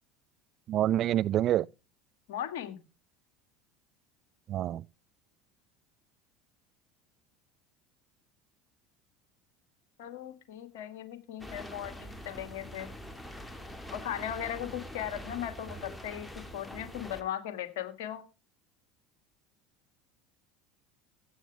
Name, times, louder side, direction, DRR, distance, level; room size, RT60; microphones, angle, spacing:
voice 1, 0.7-1.7 4.5-4.8, right 12 dB, 45° right, 0.5 m, -27 dB
voice 2, 2.3-2.8 10.0-12.9 13.9-18.2, left 10 dB, 65° left, 2.3 m, -38 dB
sound 1, 11.4-17.2, equal, 10° left, 2.3 m, -44 dB
15.0 x 9.3 x 3.5 m
figure-of-eight pair, 70°, 0 cm